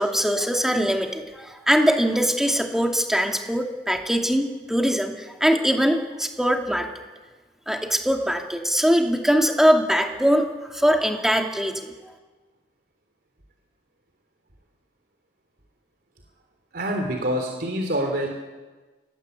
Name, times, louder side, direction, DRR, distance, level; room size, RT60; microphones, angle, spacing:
voice 1, 0.0-6.9 7.7-10.5 10.7-11.9, equal, ahead, 2 dB, 2.5 m, -22 dB
voice 2, 16.7-18.3, equal, 60° right, 2 dB, 3.5 m, -26 dB
27.5 x 20.0 x 8.2 m, 1.3 s
head